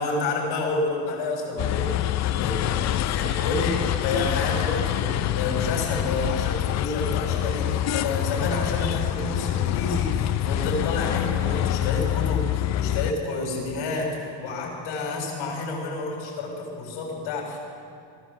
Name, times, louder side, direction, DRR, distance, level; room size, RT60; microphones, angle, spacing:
voice 1, 0.0-2.0 2.2-3.7 4.0-17.6, left 3 dB, 80° left, -1 dB, 7.4 m, -29 dB
sound 1, 1.6-13.1, left 12 dB, 40° left, 0.5 m, -26 dB
23.0 x 14.5 x 7.7 m, 2.4 s
cardioid pair, 160°, 43 cm